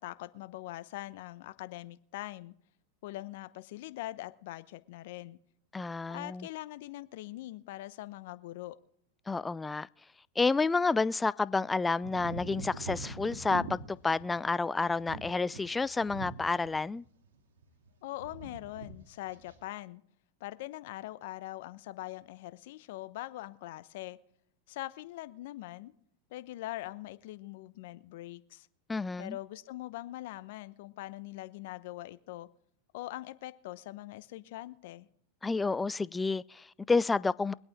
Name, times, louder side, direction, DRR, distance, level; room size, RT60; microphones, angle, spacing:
voice 1, 0.0-2.5 3.0-5.4 6.1-8.8 18.0-20.0 20.4-24.2 24.7-25.9 26.3-28.7 29.2-32.5 32.9-35.1, left 16 dB, 65° left, 0.9 m, -42 dB
voice 2, 5.7-6.5 9.3-9.9 10.4-17.0 28.9-29.4 35.4-37.5, left 3 dB, 15° left, 0.4 m, -30 dB
sound 1, 12.0-17.0 17.2-17.9 18.2-19.0 19.2-19.6, right 2 dB, 75° right, 2.4 m, -43 dB
23.5 x 8.8 x 3.6 m
hypercardioid pair, 100°, 0 cm